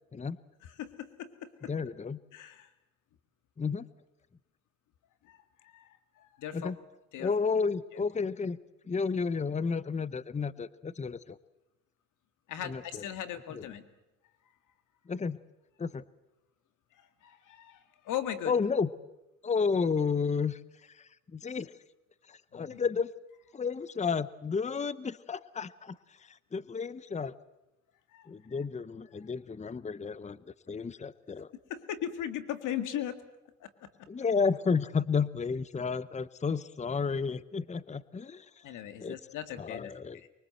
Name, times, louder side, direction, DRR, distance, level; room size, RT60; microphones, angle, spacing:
voice 1, 0.6-1.7 2.3-2.7 5.2-5.9 6.2-6.7 7.1-7.3 12.5-13.8 17.0-18.5 22.5-22.8 28.1-28.3 31.7-33.2 33.6-33.9 38.6-40.3, left 10 dB, 85° left, 10 dB, 2.1 m, -38 dB
voice 2, 1.7-2.2 3.6-3.9 6.5-6.8 7.2-8.6 8.9-11.4 12.6-13.0 13.5-13.7 15.1-15.4 15.8-16.0 18.4-18.9 19.4-21.7 22.3-23.1 23.5-27.4 28.3-30.4 30.7-31.5 34.1-39.2 39.6-40.2, left 5 dB, 25° left, 17 dB, 0.8 m, -32 dB
24.5 x 23.0 x 7.8 m, 0.98 s
cardioid pair, 90°, 30 cm